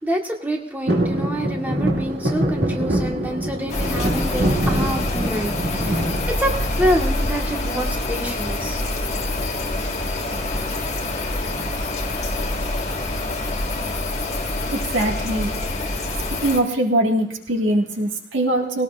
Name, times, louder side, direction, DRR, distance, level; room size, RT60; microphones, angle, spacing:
voice 1, 0.0-6.1 6.4-8.8 10.2-10.4, equal, 10° right, 0 dB, 1.4 m, -27 dB
sound 1, 0.9-7.0 7.5-8.1 9.4-9.8 10.0-10.1 10.4-10.7 11.5-12.5 12.9-13.0, right 1 dB, 65° right, 1.9 m, -24 dB
sound 2, 3.7-16.6, left 2 dB, 35° left, 1.7 m, -26 dB
voice 2, 14.7-15.5 16.4-18.8, right 1 dB, 85° right, 1 dB, 1.7 m, -22 dB
19.5 x 17.5 x 2.4 m, 0.71 s
head